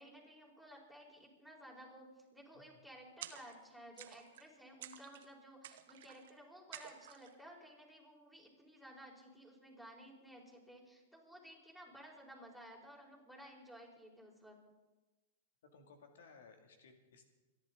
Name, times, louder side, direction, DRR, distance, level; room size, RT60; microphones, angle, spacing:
voice 1, 0.0-14.6, equal, 5° left, -2 dB, 4.7 m, -56 dB
sound 1, 3.2-3.7 4.0-4.5 4.8-5.3 5.6-6.3 6.7-7.3, right 11 dB, 65° right, 1.2 m, -52 dB
voice 2, 15.7-17.2, left 4 dB, 70° left, 5 dB, 2.6 m, -60 dB
27.0 x 11.0 x 4.0 m, 1.2 s
hypercardioid pair, 105°, 0 cm